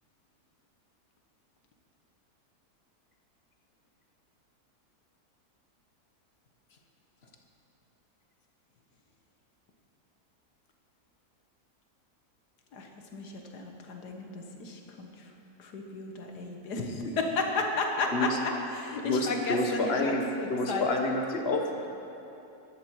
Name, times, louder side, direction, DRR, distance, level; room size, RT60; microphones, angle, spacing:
voice 1, 12.7-15.3 15.6-20.9, left 3 dB, 85° left, 2 dB, 1.8 m, -33 dB
voice 2, 16.8-17.1 18.1-18.3 19.0-20.2 20.5-21.9, left 2 dB, 45° left, 3 dB, 1.2 m, -29 dB
13.0 x 12.0 x 4.7 m, 2.9 s
omnidirectional pair, 1.7 m